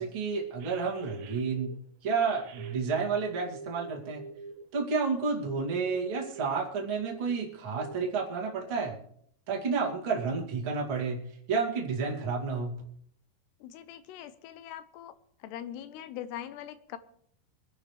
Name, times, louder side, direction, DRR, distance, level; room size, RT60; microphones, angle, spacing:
voice 1, 0.0-1.7 2.0-4.2 4.7-9.0 9.5-11.2 11.5-12.7, right 5 dB, 35° right, -2 dB, 2.5 m, -30 dB
sound 1, 0.6-1.8 2.2-4.9 5.5-7.5 7.8-8.0, right 4 dB, 85° right, 3.3 m, -45 dB
voice 2, 13.6-15.1 15.4-17.0, left 11 dB, 80° left, 12 dB, 2.7 m, -42 dB
25.0 x 11.0 x 3.3 m, 0.66 s
omnidirectional pair, 5.0 m